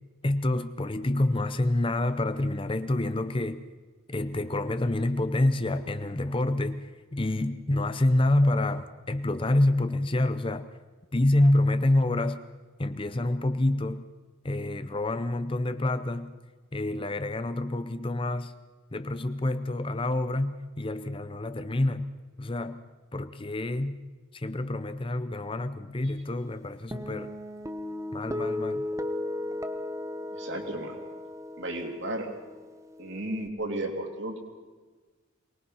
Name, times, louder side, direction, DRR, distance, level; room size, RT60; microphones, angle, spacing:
voice 1, 0.2-3.6 4.1-10.7 11.1-12.4 12.8-14.0 14.4-16.3 16.7-18.5 18.9-22.1 22.4-22.8 23.1-24.0 24.3-27.3 28.1-28.9, left 1 dB, 25° left, 11 dB, 0.6 m, -27 dB
Guitar, 26.9-33.5, left 1 dB, 15° right, 0.8 m, -36 dB
voice 2, 30.3-31.0 31.6-32.3 33.0-34.4, right 1 dB, 55° right, 2 dB, 3.1 m, -33 dB
23.0 x 20.0 x 5.6 m, 1.3 s
head